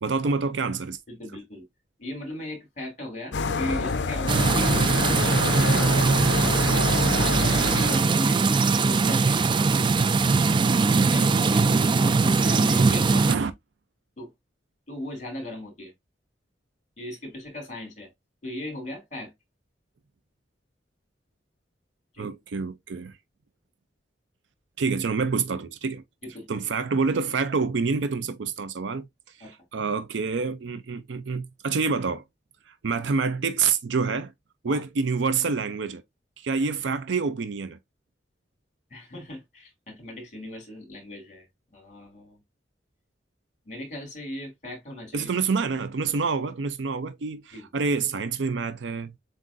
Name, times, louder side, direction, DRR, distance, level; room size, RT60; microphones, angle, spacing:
voice 1, 0.0-1.0 7.5-7.7 11.2-11.4 13.3-13.5 22.2-23.1 24.8-26.0 26.5-29.1 29.5-32.2 32.7-34.3 34.6-36.0 36.4-37.8 45.1-49.1, right 4 dB, 85° right, 0.5 m, -27 dB
voice 2, 1.1-1.6 2.0-5.9 6.4-9.9 10.7-13.4 14.2-14.3 14.9-15.9 17.0-18.1 18.4-19.3 22.1-22.3 26.2-26.6 29.4-29.5 32.9-33.0 34.7-34.8 38.9-41.5 41.7-42.4 43.6-45.3 47.5-47.7, left 1 dB, 40° left, 3.1 m, -37 dB
sound 1, 3.3-8.1, left 4 dB, 70° left, 0.5 m, -27 dB
sound 2, 4.3-13.3, right 4 dB, 25° right, 0.3 m, -21 dB
7.6 x 2.6 x 2.5 m
head